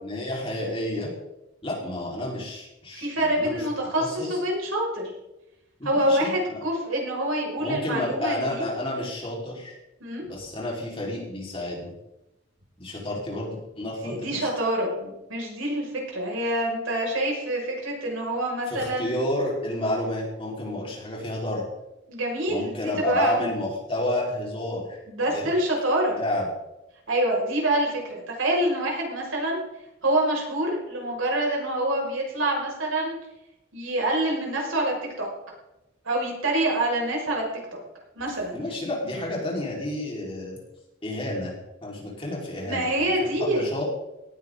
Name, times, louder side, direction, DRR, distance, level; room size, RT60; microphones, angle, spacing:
voice 1, 0.0-1.1 1.6-3.6 4.0-4.4 5.8-6.6 7.6-9.7 10.2-11.9 12.8-14.5 18.7-21.7 22.5-25.0 25.2-25.5 26.1-26.5 38.5-40.6 41.0-41.5 41.8-43.9, left 1 dB, 25° left, -3 dB, 4.8 m, -30 dB
voice 2, 2.9-5.1 5.8-8.6 10.0-10.2 14.0-19.2 22.1-23.5 25.1-26.2 27.1-29.6 30.0-33.2 33.7-35.3 36.0-37.4 37.7-37.8 38.2-38.7 42.6-43.6, right 1 dB, 90° right, -1 dB, 6.3 m, -26 dB
18.0 x 15.0 x 4.0 m, 0.93 s
head